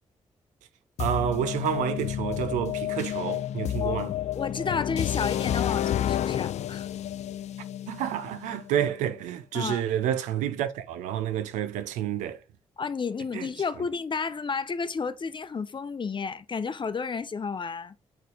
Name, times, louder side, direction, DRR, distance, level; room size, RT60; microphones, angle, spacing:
sound 1, 1.0-8.9, left 11 dB, 65° left, 0.4 m, -30 dB
voice 1, 1.0-4.1 7.9-12.4 13.3-13.5 13.8-13.9, right 10 dB, 85° right, 0.6 m, -29 dB
voice 2, 4.3-6.9 9.5-9.8 12.8-17.9, left 5 dB, 40° left, 0.7 m, -32 dB
6.9 x 4.2 x 3.9 m
hypercardioid pair, 40°, 12 cm